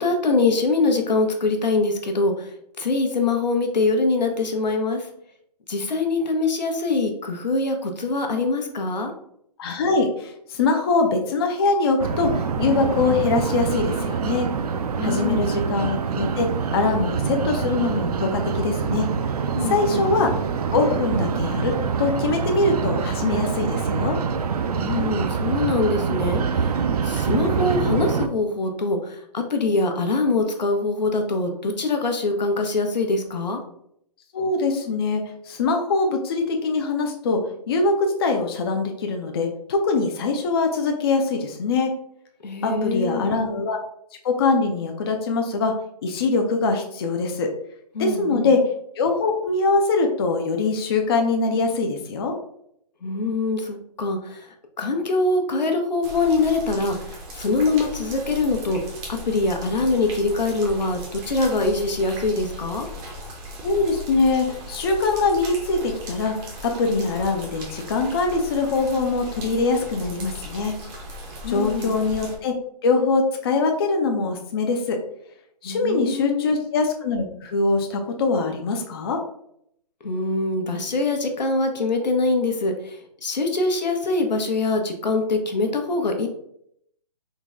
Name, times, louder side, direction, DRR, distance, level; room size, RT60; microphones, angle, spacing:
voice 1, 0.0-2.5 2.8-5.1 5.7-9.1 15.0-15.4 19.5-20.2 24.8-26.7 27.0-33.6 42.4-43.3 47.9-48.5 53.0-54.5 54.8-58.8 59.1-62.9 71.4-72.0 75.6-76.6 80.0-86.3, left 3 dB, 85° left, 4 dB, 0.8 m, -23 dB
voice 2, 9.6-14.5 15.0-16.5 16.7-19.1 19.6-20.3 20.7-24.2 34.3-37.4 37.7-41.9 42.6-43.8 44.2-45.7 46.0-47.5 48.0-48.6 49.0-52.3 63.6-66.3 66.6-70.7 71.5-72.5 72.8-75.0 75.6-79.2, left 3 dB, 35° left, 3 dB, 0.4 m, -23 dB
sound 1, 12.0-28.3, right 6 dB, 65° right, 0.4 m, -25 dB
sound 2, 56.0-72.4, equal, 15° right, 0.5 m, -37 dB
3.8 x 2.1 x 3.6 m, 0.72 s
hypercardioid pair, 150°, 21 cm